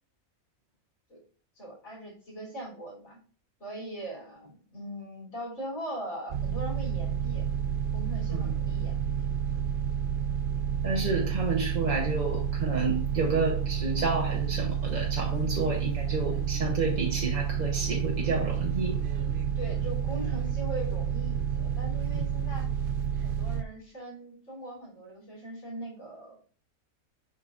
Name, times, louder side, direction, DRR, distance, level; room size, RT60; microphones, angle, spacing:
voice 1, 1.6-3.2 3.6-7.5 7.9-9.2 19.6-22.7 23.2-26.4, right 1 dB, 70° left, 3.6 m, -40 dB
sound 1, 6.3-23.6, right 8 dB, 70° right, 0.5 m, -30 dB
voice 2, 10.8-19.0 22.1-22.3, right 3 dB, 35° right, 0.9 m, -30 dB
7.0 x 5.5 x 2.5 m
omnidirectional pair, 1.5 m